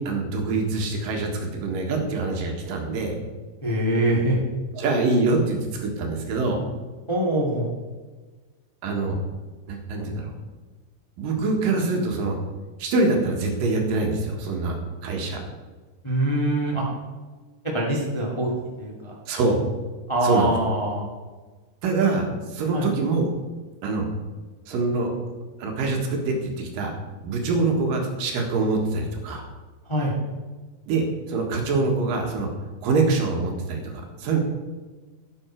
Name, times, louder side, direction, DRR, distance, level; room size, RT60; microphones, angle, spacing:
voice 1, 0.0-3.1 4.8-6.6 8.8-9.2 9.7-10.3 11.2-12.4 12.8-15.4 19.3-19.6 20.2-20.5 21.8-23.3 23.8-24.1 24.7-25.2 25.6-26.9 27.2-29.4 30.9-32.5 32.8-34.4, right 3 dB, 65° right, 2 dB, 2.9 m, -24 dB
voice 2, 3.6-4.4 7.1-7.6 16.0-16.8 17.7-18.5 18.8-19.1 20.1-21.0 22.7-22.9 29.9-30.1, right 1 dB, 25° left, -3 dB, 0.6 m, -23 dB
12.0 x 9.0 x 4.5 m, 1.3 s
omnidirectional pair, 4.6 m